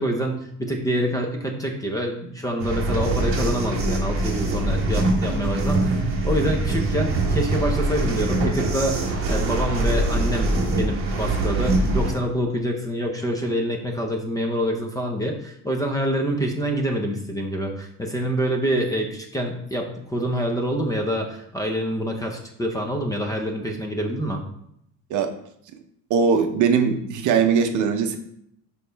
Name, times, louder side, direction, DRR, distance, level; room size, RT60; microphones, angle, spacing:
voice 1, 0.0-24.4, equal, 10° left, 2 dB, 0.6 m, -26 dB
sound 1, 2.6-12.1, right 2 dB, 35° right, 1.3 m, -23 dB
voice 2, 26.1-28.2, right 6 dB, 55° right, 7 dB, 0.7 m, -20 dB
6.5 x 5.4 x 3.3 m, 0.73 s
cardioid pair, 160°, 37 cm